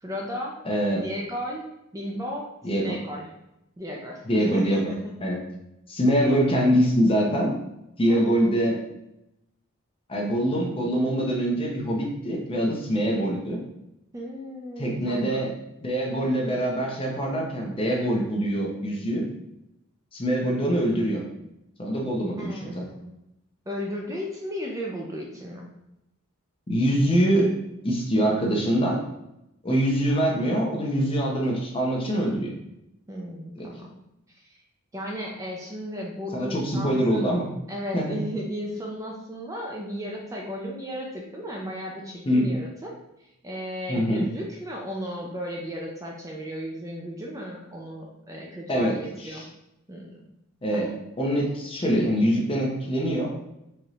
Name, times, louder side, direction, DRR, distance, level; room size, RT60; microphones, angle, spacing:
voice 1, 0.0-0.6 1.0-2.5 2.8-3.2 3.8-5.1 6.1-6.4 8.1-8.9 12.9-13.3 14.1-15.5 22.4-23.1 23.7-25.7 33.1-33.9 34.3-34.4 34.9-37.3 37.7-42.9 43.2-49.4 49.9-50.2 50.7-51.0, equal, 15° right, -1 dB, 0.4 m, -35 dB
voice 2, 0.6-1.0 2.6-3.0 4.3-4.8 5.2-5.4 5.9-7.6 8.0-8.8 10.1-13.6 14.8-15.5 15.8-19.3 20.1-21.2 21.8-22.8 26.7-27.5 27.8-29.0 29.6-32.5 33.6-33.7 36.3-37.5 37.9-38.1 42.3-42.5 43.9-44.3 48.7-49.4 50.6-50.9 51.2-53.3, equal, 25° left, -1 dB, 0.7 m, -24 dB
4.3 x 2.6 x 3.1 m, 0.86 s
head